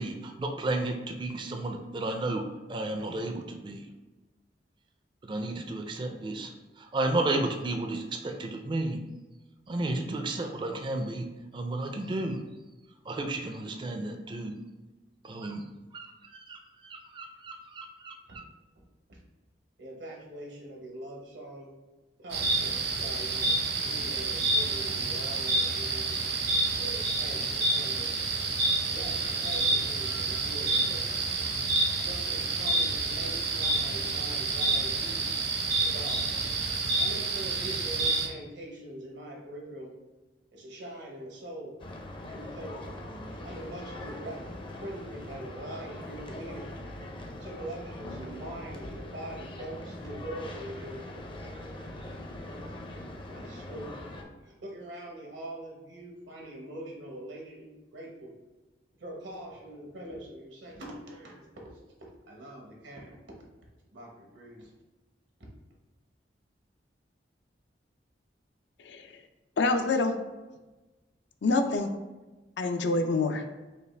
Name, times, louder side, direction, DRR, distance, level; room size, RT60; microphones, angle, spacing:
voice 1, 0.0-3.9 5.2-9.0 9.7-11.3 11.5-12.4 13.1-14.6 15.2-15.6 15.9-18.4, right 2 dB, 25° right, 4 dB, 0.4 m, -33 dB
voice 2, 19.8-21.7 22.2-26.3 26.8-28.1 28.9-31.2 32.0-35.2 35.8-36.3 36.8-39.9 40.5-41.8 42.3-42.9 43.2-46.7 47.4-51.0 53.3-54.0 54.4-58.3 59.0-61.5 62.3-63.2 63.9-64.7, right 1 dB, 85° right, -1 dB, 1.1 m, -43 dB
sound 1, 22.3-38.3, right 3 dB, 70° right, 0.8 m, -28 dB
sound 2, 41.8-54.2, left 1 dB, 30° left, 0.5 m, -42 dB
voice 3, 68.8-69.1 69.6-70.2 71.4-71.9 72.6-73.4, left 3 dB, 80° left, 7 dB, 0.4 m, -26 dB
5.4 x 2.4 x 3.2 m, 1.2 s
head